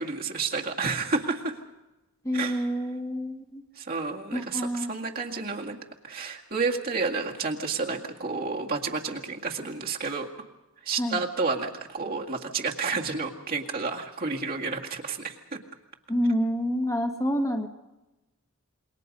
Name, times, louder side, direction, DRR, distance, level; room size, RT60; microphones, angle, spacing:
voice 1, 0.0-1.6 2.3-2.7 3.8-5.8 6.0-10.3 10.8-15.6, right 4 dB, 45° right, 0 dB, 2.0 m, -30 dB
voice 2, 2.2-3.6 4.3-4.9 11.0-11.2 16.1-17.7, equal, 15° left, 3 dB, 1.6 m, -28 dB
27.5 x 22.5 x 5.4 m, 1.0 s
head